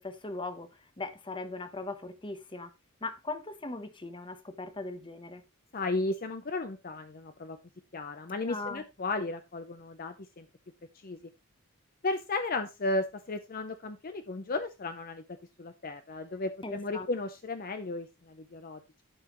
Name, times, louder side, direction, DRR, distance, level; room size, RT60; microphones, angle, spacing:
voice 1, 0.0-2.7 3.0-5.4 8.4-8.8 16.6-17.1, left 3 dB, 25° left, 1.0 m, -39 dB
voice 2, 5.7-7.6 7.9-10.5 11.0-11.2 12.0-18.8, left 2 dB, 45° left, 0.6 m, -34 dB
12.0 x 5.6 x 3.0 m
head